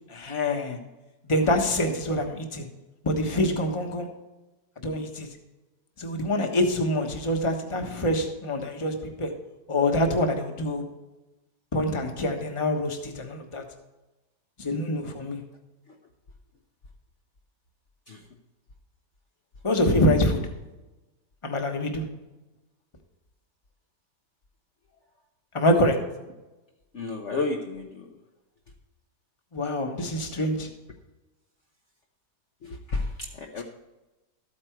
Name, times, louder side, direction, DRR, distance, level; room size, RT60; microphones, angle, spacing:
voice 1, 0.1-0.8 1.2-2.7 3.0-4.1 4.8-5.3 6.0-9.3 9.7-10.8 11.7-13.6 14.6-15.4 19.6-20.4 21.4-22.0 25.5-26.0 29.5-30.7, left 1 dB, 20° left, 4 dB, 1.2 m, -25 dB
voice 2, 26.9-28.1 32.6-33.1 33.4-33.6, left 3 dB, 50° left, 1 dB, 1.1 m, -31 dB
13.5 x 8.8 x 4.6 m, 1.1 s
omnidirectional pair, 1.9 m